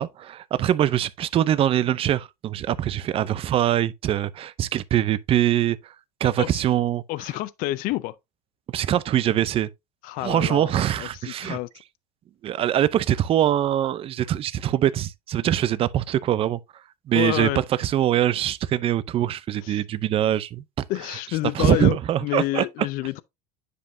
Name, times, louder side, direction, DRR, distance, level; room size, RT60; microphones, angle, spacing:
voice 1, 0.0-5.9 6.2-7.0 8.7-9.7 10.2-11.6 12.4-16.6 17.1-17.5 17.8-20.6 21.5-22.6, right 11 dB, 30° right, 0.6 m, -23 dB
voice 2, 7.1-8.2 10.0-11.7 17.1-17.6 19.6-19.8 20.9-23.2, left 18 dB, 45° left, 0.5 m, -28 dB
9.7 x 5.3 x 2.7 m
supercardioid pair, 130°, 20 cm